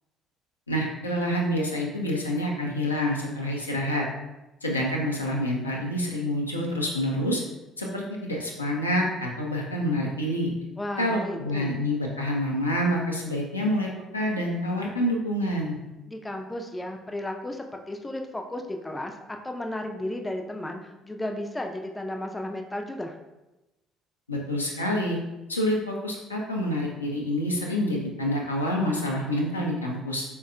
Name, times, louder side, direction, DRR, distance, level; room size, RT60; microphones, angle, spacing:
voice 1, 0.7-4.0 4.6-7.4 7.8-10.5 11.0-15.8 24.3-25.2 25.5-30.2, equal, 85° left, -2 dB, 0.4 m, -27 dB
voice 2, 10.8-11.7 16.1-23.2, left 1 dB, 15° left, 4 dB, 0.3 m, -34 dB
3.9 x 2.2 x 2.4 m, 0.99 s
figure-of-eight pair, 50°, 0 cm